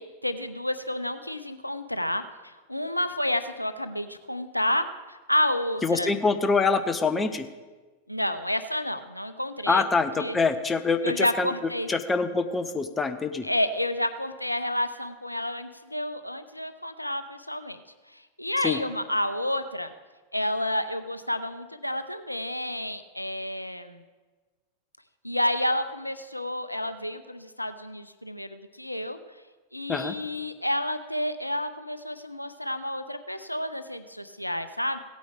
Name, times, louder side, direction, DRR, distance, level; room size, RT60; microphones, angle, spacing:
voice 1, 0.0-6.1 8.1-9.8 10.2-10.4 11.0-11.9 13.4-17.8 18.1-19.9 20.3-24.0 25.2-29.2 29.7-35.0, left 1 dB, 90° left, 11 dB, 0.5 m, -30 dB
voice 2, 5.8-7.5 9.7-11.5 11.9-13.4 18.6-18.8 29.9-30.2, left 4 dB, 15° left, 10 dB, 0.7 m, -25 dB
16.5 x 9.1 x 3.4 m, 1.3 s
figure-of-eight pair, 90°, 0 cm